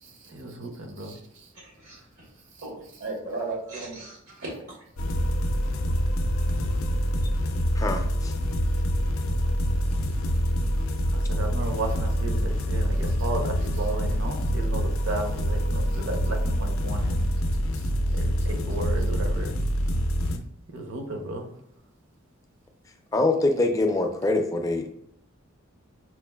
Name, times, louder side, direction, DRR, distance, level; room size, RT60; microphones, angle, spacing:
voice 1, 0.0-1.5 11.0-17.4 17.7-19.6 20.7-21.5, right 2 dB, 60° right, 3 dB, 0.7 m, -34 dB
voice 2, 1.5-2.3 2.6-4.7, right 2 dB, 80° right, -3 dB, 1.1 m, -36 dB
sound 1, 5.0-20.4, equal, 80° left, 0.4 m, -26 dB
voice 3, 7.8-8.3 23.1-24.9, left 2 dB, 15° left, 4 dB, 0.4 m, -24 dB
5.8 x 2.4 x 2.3 m, 0.70 s
head